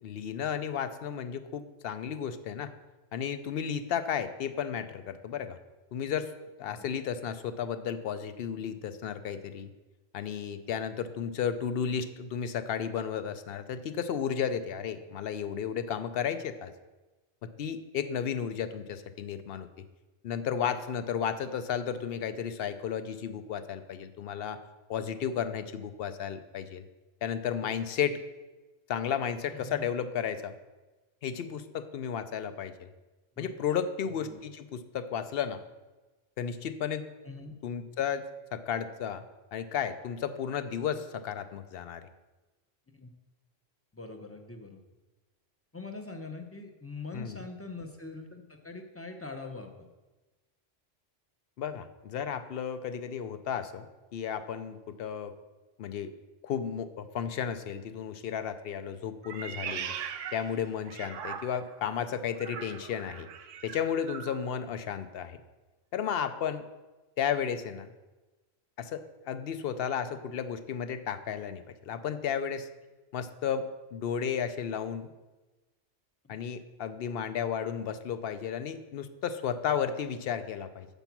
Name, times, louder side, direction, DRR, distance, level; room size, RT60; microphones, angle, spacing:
voice 1, 0.0-2.7 3.1-5.6 5.9-6.3 6.6-9.7 10.1-16.7 17.4-19.7 20.2-24.6 24.9-26.8 27.2-28.2 28.9-30.5 31.2-32.9 33.4-35.6 36.4-37.1 37.6-39.2 39.5-42.1 47.1-47.4 51.6-53.9 54.1-55.3 55.8-56.1 56.4-59.9 60.3-63.3 63.6-65.4 65.9-66.6 67.2-67.9 68.8-72.7 73.1-75.1 76.3-80.9, left 8 dB, 60° left, 11 dB, 0.7 m, -33 dB
voice 2, 29.5-29.9 33.4-33.5 34.2-34.4 37.2-37.6 42.9-43.1 43.9-44.8 45.7-49.9 76.2-76.3, left 3 dB, 15° left, 3 dB, 0.6 m, -43 dB
Meow, 59.2-61.8 62.4-64.4, right 7 dB, 85° right, 0.9 m, -40 dB
8.2 x 5.3 x 5.9 m, 1.2 s
omnidirectional pair, 1.3 m